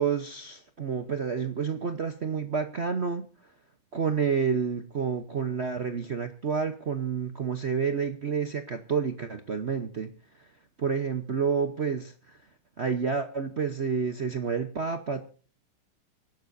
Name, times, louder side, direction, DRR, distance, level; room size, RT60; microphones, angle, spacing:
voice 1, 0.0-3.3 3.9-10.1 10.8-12.4 12.8-15.2, right 6 dB, 45° right, 8 dB, 0.9 m, -29 dB
25.0 x 12.0 x 2.6 m, 0.39 s
omnidirectional pair, 2.3 m